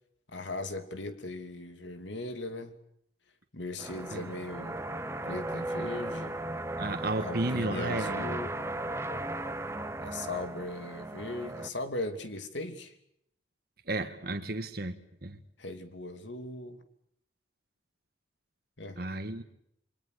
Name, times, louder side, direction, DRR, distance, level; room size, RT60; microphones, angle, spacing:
voice 1, 0.3-2.8 3.5-4.8 5.2-6.4 7.2-8.6 10.0-12.9 15.6-16.8 18.8-19.0, left 2 dB, 75° left, 2.9 m, -38 dB
sound 1, 3.8-11.7, right 1 dB, 15° right, 1.2 m, -36 dB
voice 2, 6.8-8.2 13.9-15.0 15.2-15.4 19.0-19.4, right 2 dB, 55° right, 1.6 m, -33 dB
29.0 x 23.5 x 6.6 m
head